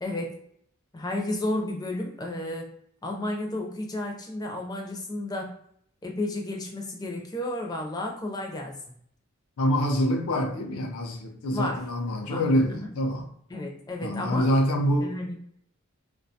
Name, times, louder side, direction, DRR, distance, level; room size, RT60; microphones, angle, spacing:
voice 1, 0.0-0.4 0.9-2.7 3.0-5.5 6.0-8.7 11.5-11.9 12.3-12.4 12.7-12.9 13.5-14.5 15.0-15.4, left 1 dB, 20° left, 1 dB, 0.4 m, -32 dB
voice 2, 9.6-13.3 14.0-15.1, equal, 85° left, 2 dB, 0.5 m, -25 dB
2.7 x 2.2 x 2.7 m, 0.66 s
head